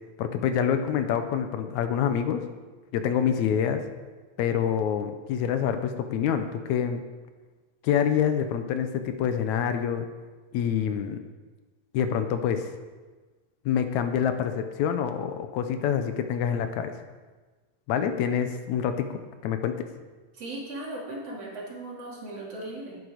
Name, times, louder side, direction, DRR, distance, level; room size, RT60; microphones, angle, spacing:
voice 1, 0.2-2.4 2.9-3.8 4.4-7.0 7.8-10.1 10.5-11.2 11.9-12.7 13.7-16.9 17.9-19.9, left 8 dB, 80° left, 8 dB, 2.1 m, -26 dB
voice 2, 20.3-23.0, right 2 dB, 55° right, -5 dB, 3.6 m, -37 dB
11.0 x 9.1 x 5.0 m, 1.3 s
omnidirectional pair, 3.3 m